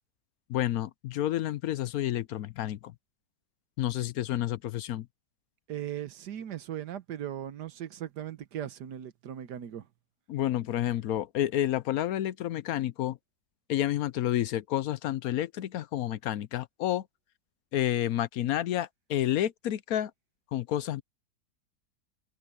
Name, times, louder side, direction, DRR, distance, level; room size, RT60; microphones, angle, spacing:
voice 1, 0.5-2.9 3.8-5.1 10.3-13.2 13.7-17.0 17.7-20.1 20.5-21.0, left 12 dB, 70° left, 1.0 m, -30 dB
voice 2, 5.7-9.9, right 10 dB, 85° right, 1.6 m, -38 dB
omnidirectional pair, 1.7 m